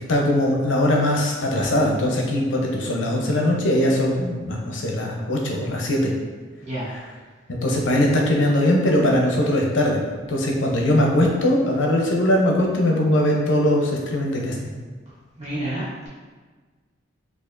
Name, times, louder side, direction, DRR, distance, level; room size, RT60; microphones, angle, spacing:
voice 1, 0.1-6.1 6.9-7.0 7.5-14.7, left 1 dB, 75° left, 0 dB, 0.7 m, -21 dB
voice 2, 6.6-6.9 15.4-16.1, right 1 dB, 35° right, -9 dB, 0.9 m, -29 dB
4.3 x 2.5 x 2.5 m, 1.4 s
head